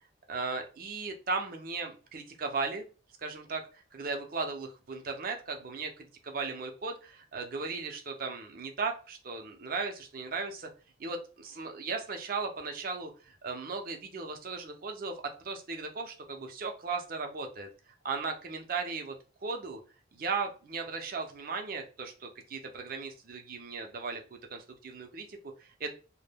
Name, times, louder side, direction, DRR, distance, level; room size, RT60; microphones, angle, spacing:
voice 1, 0.3-2.8 3.2-10.7 11.0-15.1 15.4-19.2 19.4-19.8 20.1-25.9, right 4 dB, 45° right, 4 dB, 0.5 m, -37 dB
2.2 x 2.1 x 3.3 m, 0.35 s
head